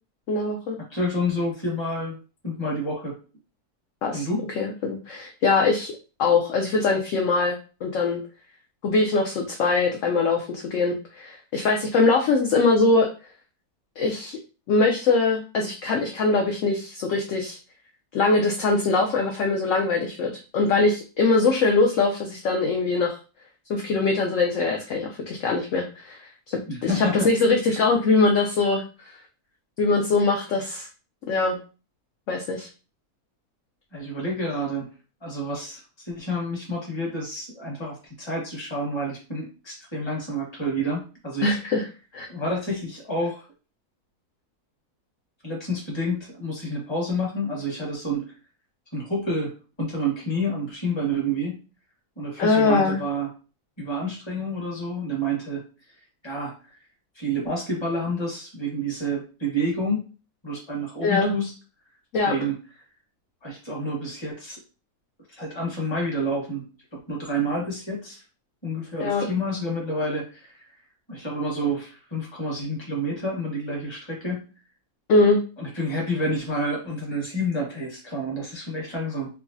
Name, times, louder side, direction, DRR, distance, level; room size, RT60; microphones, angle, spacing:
voice 1, 0.3-0.8 4.0-4.3 4.5-5.9 6.2-8.2 8.8-13.1 14.0-14.4 14.7-17.6 18.1-23.2 23.7-29.2 29.8-30.9 31.3-31.6 32.3-32.7 41.4-41.9 42.1-42.3 52.4-53.0 61.0-61.3 62.1-62.3 69.0-69.3 75.1-75.4, left 3 dB, 70° left, 1 dB, 0.8 m, -22 dB
voice 2, 0.8-2.2 2.4-3.2 4.1-4.4 26.7-27.3 33.9-34.9 35.2-41.6 42.3-43.4 45.4-48.3 48.9-51.6 52.2-53.3 53.8-55.6 56.2-56.8 57.1-60.0 60.4-61.5 62.2-62.6 63.4-64.6 65.3-66.6 66.9-68.2 68.6-70.7 71.1-74.5 75.6-79.3, equal, 20° left, -2 dB, 1.1 m, -29 dB
4.6 x 2.0 x 2.5 m, 0.34 s
omnidirectional pair, 1.6 m